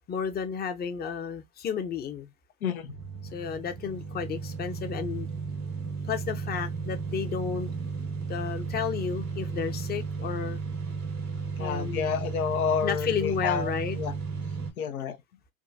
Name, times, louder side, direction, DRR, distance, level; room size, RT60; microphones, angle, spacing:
voice 1, 0.1-2.3 3.3-5.3 6.0-7.7 8.3-10.6 11.6-12.1 12.8-14.0, left 7 dB, 25° left, 0.6 m, -32 dB
sound 1, 2.8-14.7, right 5 dB, 85° right, 1.7 m, -34 dB
voice 2, 11.6-13.7 14.0-14.1 14.8-15.2, left 7 dB, 85° left, 0.7 m, -29 dB
3.6 x 2.2 x 2.5 m
hypercardioid pair, 85°, 42 cm